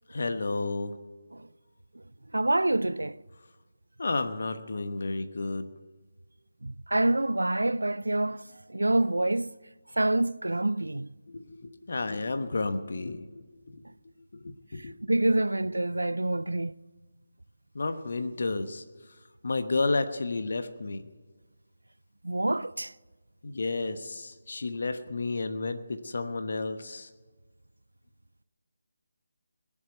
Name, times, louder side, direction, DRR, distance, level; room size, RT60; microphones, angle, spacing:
voice 1, 0.1-1.0 4.0-5.7 11.3-13.8 14.3-15.0 17.7-18.8 19.4-21.1 23.4-27.1, left 3 dB, 60° left, 1.1 m, -31 dB
voice 2, 2.3-3.2 6.6-8.4 8.7-9.5 10.0-11.1 15.1-16.7 22.2-22.9, right 1 dB, 80° right, 0.4 m, -26 dB
20.0 x 7.3 x 9.2 m
figure-of-eight pair, 155°, 0 cm